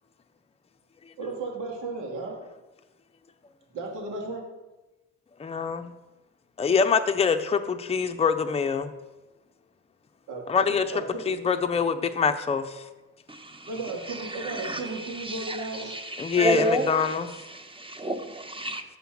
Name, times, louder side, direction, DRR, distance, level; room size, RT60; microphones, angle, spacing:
voice 1, 1.2-2.4 3.7-4.4 10.3-11.4 13.7-15.9, right 3 dB, 85° right, 0 dB, 2.3 m, -35 dB
voice 2, 5.4-5.9 6.6-8.9 10.5-10.8 11.3-12.7 16.2-17.3, left 6 dB, 20° left, 7 dB, 0.6 m, -24 dB
voice 3, 13.3-13.7 14.1-18.8, right 1 dB, 15° right, 7 dB, 0.9 m, -31 dB
7.2 x 5.6 x 5.9 m, 1.1 s
cardioid pair, 90°, 30 cm